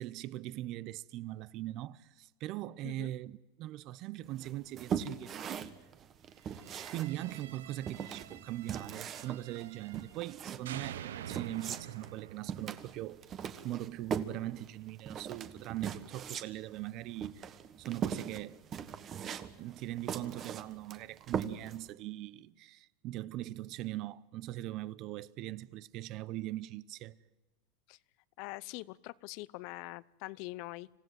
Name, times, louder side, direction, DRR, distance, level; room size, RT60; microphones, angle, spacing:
voice 1, 0.0-5.7 6.9-13.2 13.6-17.5 17.8-18.6 19.6-27.2, right 15 dB, 50° right, 0.7 m, -41 dB
sound 1, 4.4-21.9, right 8 dB, 35° right, 1.4 m, -40 dB
sound 2, 6.5-10.3 10.7-13.7, right 10 dB, 90° right, 0.9 m, -48 dB
voice 2, 28.4-30.9, left 21 dB, 60° left, 0.7 m, -43 dB
26.5 x 16.0 x 7.8 m
supercardioid pair, 120°, 0 cm